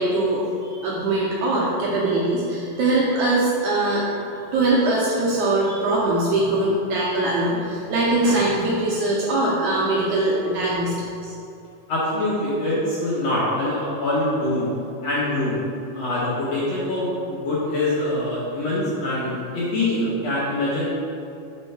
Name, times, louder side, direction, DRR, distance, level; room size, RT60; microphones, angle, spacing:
voice 1, 0.0-4.0 4.3-11.3, right 2 dB, 75° right, -5 dB, 1.8 m, -22 dB
voice 2, 11.9-14.7 15.0-15.6 15.9-20.9, left 1 dB, 60° left, -7 dB, 1.8 m, -24 dB
4.5 x 3.9 x 5.5 m, 2.6 s
omnidirectional pair, 4.0 m